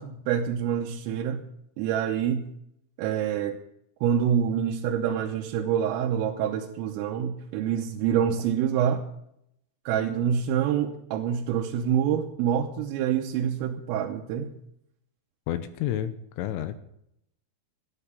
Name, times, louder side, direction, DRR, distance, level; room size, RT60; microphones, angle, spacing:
voice 1, 0.0-1.4 1.8-2.5 3.0-3.6 4.0-9.0 9.9-14.5, right 9 dB, 85° right, 1 dB, 3.5 m, -26 dB
voice 2, 15.5-16.8, left 11 dB, 80° left, 11 dB, 3.1 m, -30 dB
13.0 x 10.5 x 6.8 m, 0.76 s
omnidirectional pair, 6.0 m